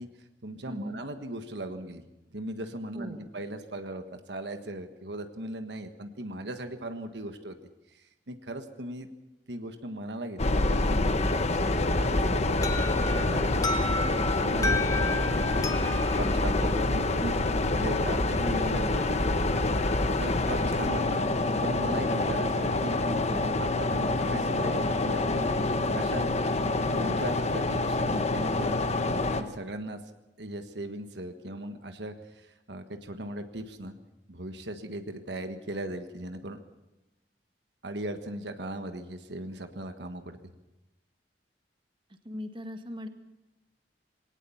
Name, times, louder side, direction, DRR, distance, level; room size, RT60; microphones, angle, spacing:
voice 1, 0.0-2.0 2.3-7.6 7.9-9.1 9.5-12.7 13.1-13.5 14.0-15.2 15.8-19.2 20.1-21.2 21.6-23.2 23.8-25.5 25.9-26.5 26.9-28.8 29.4-30.0 30.4-33.9 34.3-36.6 37.8-40.4, right 1 dB, 75° right, 7 dB, 1.5 m, -38 dB
voice 2, 0.7-1.0 2.9-3.3 23.3-23.6 42.1-43.1, equal, 30° right, 6 dB, 1.7 m, -39 dB
sound 1, 10.4-29.4, left 2 dB, 40° left, 1.2 m, -26 dB
Alarm, 12.6-17.4, left 2 dB, 20° left, 1.8 m, -34 dB
21.0 x 18.0 x 7.2 m, 0.97 s
head